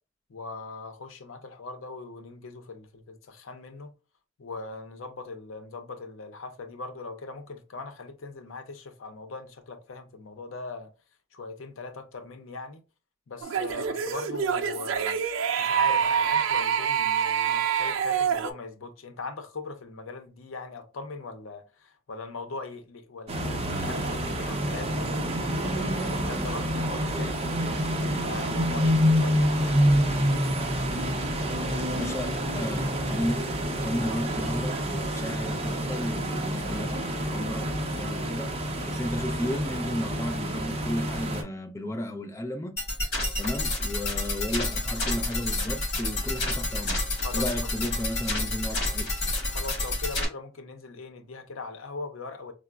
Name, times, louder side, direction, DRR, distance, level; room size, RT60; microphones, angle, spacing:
voice 1, 0.3-3.9 4.4-10.9 11.3-12.8 13.3-15.2 15.6-27.6 28.2-30.1 31.7-32.1 47.2-47.5 49.5-52.5, left 3 dB, 85° left, 0.6 m, -40 dB
sound 1, 13.4-18.5, right 8 dB, 75° right, 0.3 m, -26 dB
sound 2, 23.3-41.4, equal, 30° right, 0.6 m, -27 dB
voice 2, 31.9-33.4 33.7-37.7 38.0-42.8 43.4-47.0 47.3-49.2, left 1 dB, 15° left, 0.3 m, -34 dB
sound 3, 42.8-50.3, left 2 dB, 55° left, 1.1 m, -29 dB
4.7 x 2.0 x 2.2 m
head